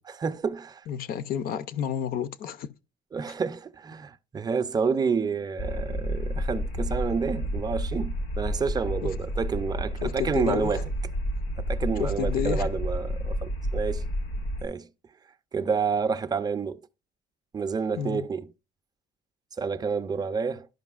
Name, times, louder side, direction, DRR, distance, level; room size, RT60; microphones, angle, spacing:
voice 1, 0.0-0.8 3.1-10.8 11.7-14.0 14.6-14.9 15.5-16.8 17.5-18.5 19.6-20.7, right 5 dB, 25° right, 0.5 m, -29 dB
voice 2, 0.9-2.7 9.0-9.1 10.0-10.8 12.0-12.7 17.9-18.2, left 9 dB, 60° left, 0.5 m, -30 dB
sound 1, 5.6-14.6, equal, 90° left, 1.2 m, -30 dB
12.0 x 5.3 x 2.4 m
cardioid pair, 110°, 17 cm